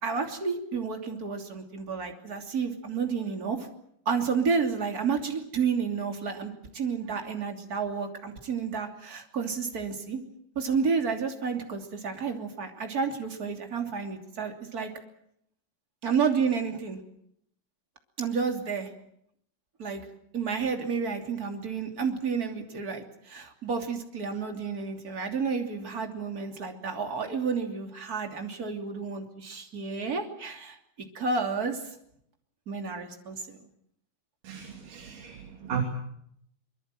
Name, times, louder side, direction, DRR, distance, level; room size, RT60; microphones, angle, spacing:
voice 1, 0.0-3.7 4.0-10.2 10.5-14.9 16.0-17.0 18.2-18.9 19.8-20.0 20.3-30.8 31.1-31.8 32.7-33.6, right 5 dB, 25° right, 4 dB, 2.9 m, -30 dB
voice 2, 34.4-35.8, right 8 dB, 60° right, 4 dB, 4.1 m, -35 dB
24.0 x 24.0 x 7.7 m, 0.72 s
omnidirectional pair, 4.5 m